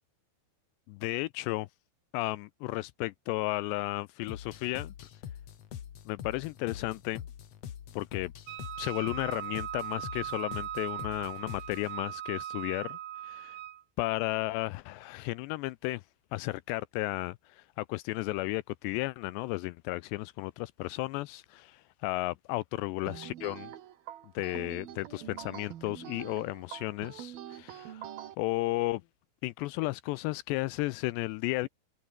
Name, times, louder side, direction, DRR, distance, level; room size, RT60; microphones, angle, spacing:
voice 1, 0.9-1.7 2.1-4.9 6.1-7.2 7.9-8.3 8.8-13.0 13.2-13.6 14.0-16.0 16.3-23.7 24.4-28.1 28.4-29.0 29.4-31.7, left 20 dB, 80° left, 2.6 m, -34 dB
sound 1, 4.3-12.0, left 9 dB, 60° left, 1.7 m, -44 dB
Wind instrument woodwind instrument, 8.5-13.8, right 12 dB, 85° right, 1.6 m, -39 dB
sound 2, 23.1-28.3, right 11 dB, 60° right, 3.2 m, -45 dB
omnidirectional pair, 5.3 m